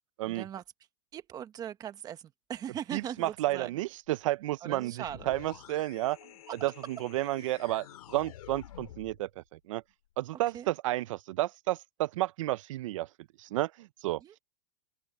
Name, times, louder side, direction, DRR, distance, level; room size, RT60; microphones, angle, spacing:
voice 1, 0.2-0.6 1.1-2.2 2.5-3.7 4.6-5.2 10.5-10.7 14.2-14.3, right 10 dB, 20° right, 1.4 m, -39 dB
voice 2, 2.9-6.2 6.5-9.8 10.2-13.1 13.4-14.2, right 16 dB, 60° right, 0.6 m, -32 dB
sound 1, 5.0-9.2, left 12 dB, 80° left, 2.6 m, -49 dB
open air
supercardioid pair, 155°, 18 cm